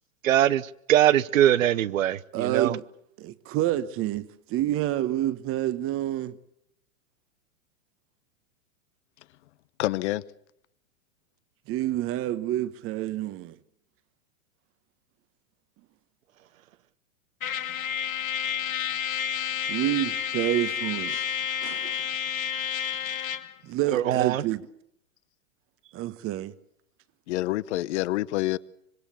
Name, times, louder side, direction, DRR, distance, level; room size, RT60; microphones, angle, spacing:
voice 1, 0.2-2.8 23.9-24.4, right 12 dB, 75° right, 1.0 m, -22 dB
voice 2, 2.3-2.8 3.2-6.4 11.7-13.6 19.7-21.2 21.6-22.0 23.6-24.6 25.9-26.5, right 13 dB, 35° right, 1.2 m, -28 dB
voice 3, 9.8-10.2 27.3-28.6, left 17 dB, 60° left, 1.0 m, -27 dB
Trumpet, 17.4-23.5, left 9 dB, 80° left, 2.0 m, -30 dB
25.5 x 20.5 x 7.0 m
hypercardioid pair, 120°, 40 cm